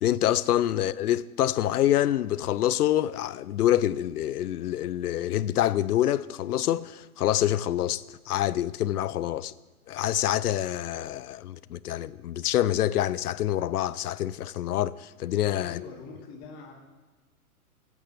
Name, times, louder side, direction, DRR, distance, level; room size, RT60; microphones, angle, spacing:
voice 1, 0.0-9.5 9.9-15.8, left 12 dB, 85° left, 0.5 m, -26 dB
voice 2, 15.6-16.7, left 5 dB, 35° left, 2.4 m, -43 dB
14.0 x 8.1 x 3.4 m
hypercardioid pair, 135°, 44 cm